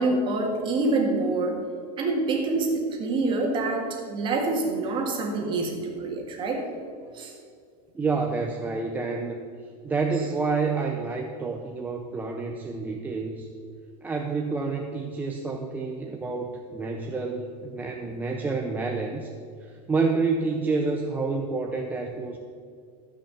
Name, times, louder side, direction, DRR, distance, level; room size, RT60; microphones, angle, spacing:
voice 1, 0.0-1.6 2.0-6.6 7.1-7.3, right 2 dB, 25° right, 1 dB, 1.8 m, -26 dB
voice 2, 7.9-9.4 9.8-13.5 14.0-19.3 19.6-22.4, right 4 dB, 10° right, 1 dB, 0.5 m, -28 dB
13.0 x 5.8 x 6.9 m, 2.2 s
supercardioid pair, 160°, 20 cm